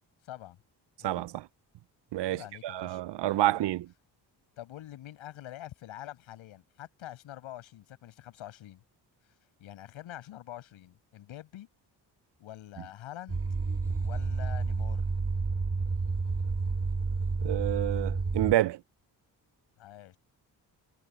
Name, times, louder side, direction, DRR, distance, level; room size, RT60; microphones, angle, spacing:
voice 1, 0.2-0.6 1.0-1.2 2.3-3.0 3.3-3.7 4.6-8.8 9.6-11.7 12.4-13.4 14.0-15.1 19.8-20.2, left 13 dB, 85° left, 7.1 m, -46 dB
voice 2, 1.0-1.5 2.1-3.9 17.4-18.8, right 15 dB, 65° right, 0.6 m, -29 dB
sound 1, 13.3-18.6, right 4 dB, 30° right, 1.9 m, -30 dB
supercardioid pair, 50°, 46 cm